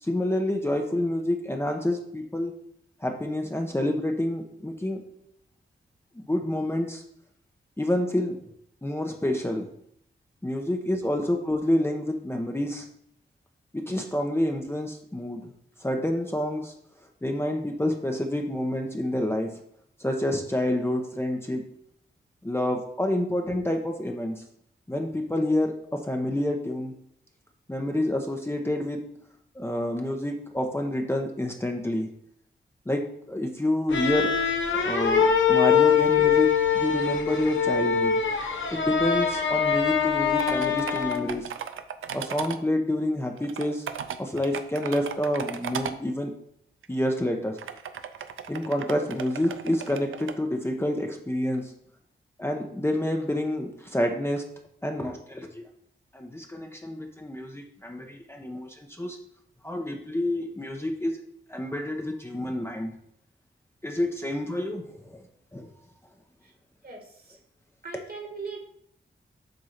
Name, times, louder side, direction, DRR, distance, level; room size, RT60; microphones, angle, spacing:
voice 1, 0.0-2.5 3.0-5.0 6.1-7.0 7.8-8.4 8.8-9.7 10.4-12.9 13.7-15.5 15.8-16.7 17.2-19.5 20.0-21.6 22.4-24.4 24.9-26.9 27.7-29.0 29.5-32.1 32.9-34.4 34.7-38.2 38.7-41.5 42.1-43.9 44.2-46.3 46.9-47.6 48.5-51.7 52.4-54.4 54.8-55.6 56.1-59.2 59.6-61.1 61.5-62.9 63.8-65.2 65.5-65.7, left 1 dB, 10° left, 2 dB, 0.8 m, -28 dB
sound 1, 33.9-41.4, left 7 dB, 70° left, 0.9 m, -23 dB
sound 2, 40.4-42.6 43.4-45.9 46.8-46.9 47.6-50.3, right 8 dB, 80° right, 0.5 m, -36 dB
voice 2, 66.8-67.4 67.8-68.6, right 4 dB, 50° right, 2 dB, 1.8 m, -39 dB
7.9 x 2.6 x 5.8 m, 0.70 s
cardioid pair, 60°, 21 cm